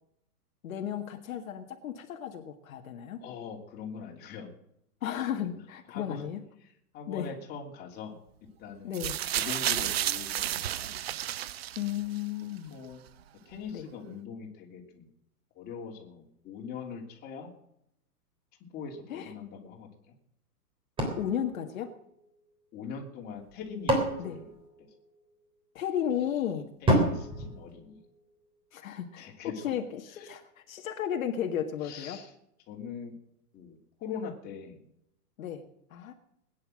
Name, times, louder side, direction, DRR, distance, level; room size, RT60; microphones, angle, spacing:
voice 1, 0.6-3.2 5.0-6.4 7.1-7.3 8.8-9.1 11.8-12.7 13.7-13.9 19.1-19.3 21.2-21.9 24.2-24.4 25.8-26.7 28.7-32.2 35.4-35.6 35.9-36.1, left 9 dB, 60° left, 4 dB, 1.9 m, -34 dB
voice 2, 3.2-4.5 5.3-5.6 5.9-6.2 6.6-8.2 8.6-9.1 9.4-11.0 11.3-11.7 12.7-13.0 13.4-15.1 15.5-17.5 18.7-20.1 22.7-24.5 24.8-24.9 26.8-28.0 29.2-29.7 30.1-30.4 31.8-32.3 32.7-33.1 33.5-34.8, left 6 dB, 20° left, 0 dB, 3.0 m, -42 dB
sound 1, 8.9-12.2 13.1-13.2, right 12 dB, 45° right, 0.5 m, -31 dB
sound 2, 21.0-22.5 23.4-25.4 26.9-28.5, right 1 dB, 10° right, 3.4 m, -30 dB
20.5 x 9.9 x 6.4 m, 0.76 s
hypercardioid pair, 160°, 46 cm